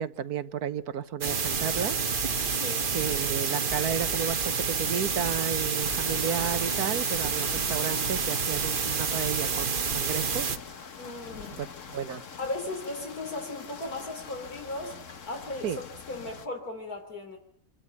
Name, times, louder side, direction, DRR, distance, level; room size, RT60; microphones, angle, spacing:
voice 1, 0.0-2.0 2.9-10.6 11.6-11.7 11.9-12.2 15.6-15.8, right 8 dB, 75° right, 12 dB, 1.6 m, -32 dB
sound 1, 1.2-10.6, right 5 dB, 40° right, 1.1 m, -28 dB
voice 2, 2.5-2.9 11.0-11.6 12.4-15.0 15.2-17.4, left 2 dB, 70° left, 2 dB, 4.2 m, -36 dB
sound 2, 5.8-16.5, left 6 dB, 55° left, 1.6 m, -44 dB
26.0 x 13.0 x 9.9 m, 0.63 s
omnidirectional pair, 1.6 m